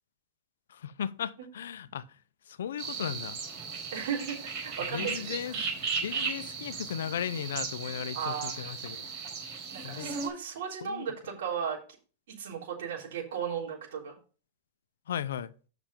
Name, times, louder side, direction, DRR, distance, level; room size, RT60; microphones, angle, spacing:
voice 1, 0.7-2.1 2.5-3.4 4.9-5.5 6.0-9.1 9.8-10.2 10.8-11.0 15.1-15.5, left 9 dB, 90° left, 0.6 m, -36 dB
sound 1, 2.8-10.3, right 5 dB, 35° right, 4.4 m, -36 dB
voice 2, 3.9-5.7 8.1-8.7 9.7-11.8 12.3-14.2, right 7 dB, 70° right, 3.5 m, -36 dB
7.3 x 5.9 x 5.2 m
supercardioid pair, 150°, 0 cm